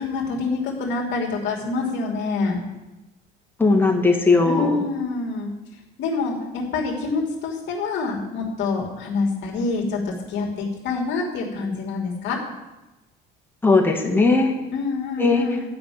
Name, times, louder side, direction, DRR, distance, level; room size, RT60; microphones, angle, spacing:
voice 1, 0.0-2.6 4.4-5.5 6.0-12.4 14.7-15.6, left 4 dB, 65° left, -2 dB, 2.7 m, -26 dB
voice 2, 3.6-4.9 13.6-14.6 15.2-15.5, left 3 dB, 10° left, 1 dB, 1.9 m, -18 dB
13.0 x 5.9 x 8.7 m, 1.0 s
cardioid pair, 140°, 20 cm